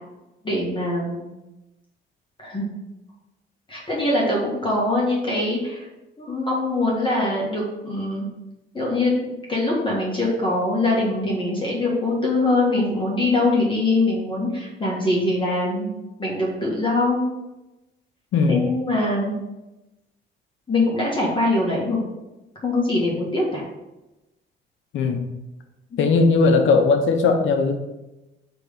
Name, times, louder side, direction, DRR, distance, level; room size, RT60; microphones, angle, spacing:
voice 1, 0.4-1.2 2.4-2.7 3.7-5.9 6.2-8.2 8.7-15.9 16.2-17.2 18.5-19.3 20.7-22.0 22.6-23.6 25.9-26.0, left 2 dB, 25° left, -4 dB, 1.8 m, -23 dB
voice 2, 18.3-18.7 24.9-25.3 26.0-27.7, left 4 dB, 80° left, 6 dB, 0.7 m, -18 dB
5.9 x 3.4 x 5.3 m, 1.0 s
cardioid pair, 90°, 20 cm